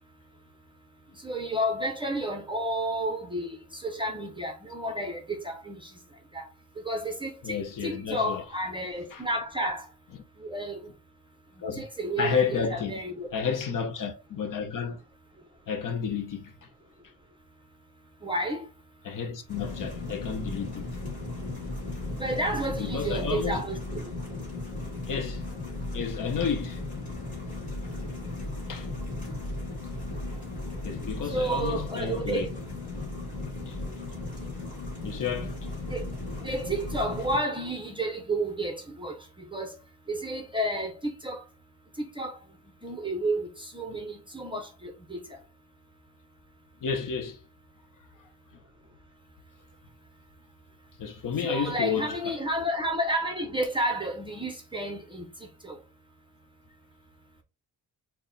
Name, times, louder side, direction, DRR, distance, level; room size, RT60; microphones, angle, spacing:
voice 1, 1.2-5.9 6.3-6.5 6.8-9.9 10.4-10.9 11.8-13.3 18.2-18.6 22.1-24.1 31.3-32.5 35.9-36.0 36.4-39.8 40.1-41.4 42.0-42.4 42.8-45.4 51.4-55.2 55.6-55.8, right 1 dB, 10° right, 0.6 m, -31 dB
voice 2, 7.4-8.4 9.1-9.3 11.6-11.8 12.2-13.0 13.3-15.0 15.7-16.5 19.0-20.9 22.8-23.6 25.1-25.4 25.9-26.9 28.7-28.9 30.8-32.5 33.7-33.8 35.0-35.5 46.8-47.4 51.0-52.4, left 6 dB, 50° left, 0.8 m, -31 dB
sound 1, 19.5-37.4, left 2 dB, 20° left, 2.1 m, -36 dB
4.5 x 2.1 x 3.9 m
wide cardioid pair, 180°, 40 cm